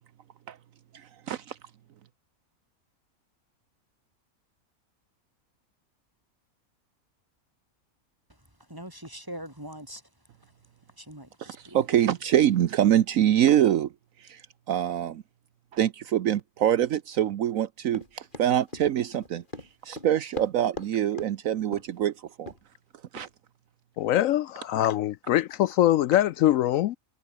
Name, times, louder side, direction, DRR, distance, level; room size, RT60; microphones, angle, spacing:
voice 1, 1.3-1.6 11.4-13.9 14.2-14.4 14.7-15.2 15.7-19.4 19.8-22.1 22.4-22.5 23.1-23.3, right 11 dB, 70° right, 1.2 m, -24 dB
voice 2, 8.7-10.0 11.0-11.9, right 1 dB, 15° right, 5.2 m, -42 dB
Run, 17.9-20.9 21.2-21.3 21.7-22.0 22.5-22.6 23.2-23.3, left 1 dB, 35° left, 5.2 m, -40 dB
voice 3, 24.0-27.0, left 13 dB, 75° left, 0.9 m, -23 dB
omnidirectional pair, 1.5 m